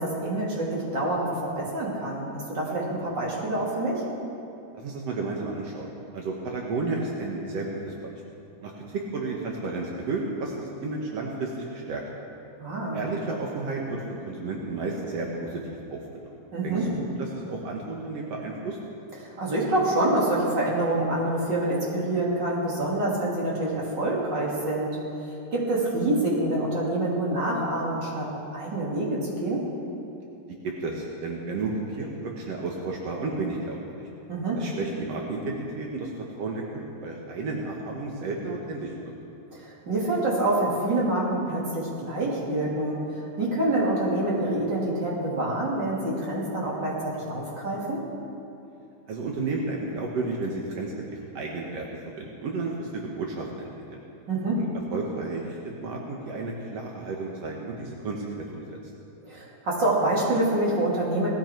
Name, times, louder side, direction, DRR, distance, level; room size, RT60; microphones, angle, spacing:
voice 1, 0.0-4.0 12.6-13.0 16.5-16.9 19.2-29.6 34.3-34.6 39.5-48.0 54.3-54.6 59.2-61.3, right 1 dB, 30° right, -5 dB, 2.8 m, -26 dB
voice 2, 4.7-8.2 8.6-12.0 12.9-15.6 15.9-16.2 16.6-18.8 30.6-34.1 34.5-36.1 36.4-39.1 49.1-51.9 52.2-54.0 54.6-54.7 54.9-58.8, right 3 dB, 70° right, -1 dB, 1.5 m, -32 dB
18.5 x 15.0 x 4.6 m, 2.7 s
omnidirectional pair, 4.7 m